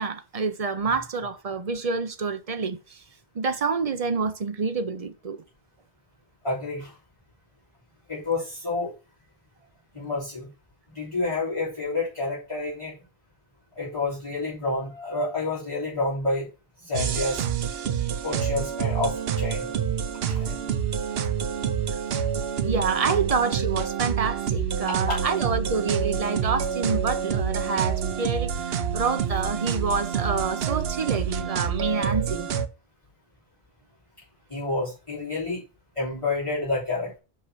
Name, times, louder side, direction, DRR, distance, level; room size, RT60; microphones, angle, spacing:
voice 1, 0.0-3.0 3.3-5.4 22.6-32.5, right 4 dB, 40° right, 0.8 m, -27 dB
voice 2, 6.4-6.9 8.1-8.9 9.9-10.5 10.9-12.9 13.8-16.5 16.8-17.4 18.2-19.7 20.3-20.6 22.3-22.5 24.9-25.2 34.5-35.6 36.0-37.2, left 2 dB, 30° left, 3.7 m, -29 dB
sound 1, 16.9-32.7, right 7 dB, 75° right, 0.9 m, -27 dB
5.6 x 5.6 x 6.2 m
omnidirectional pair, 1.0 m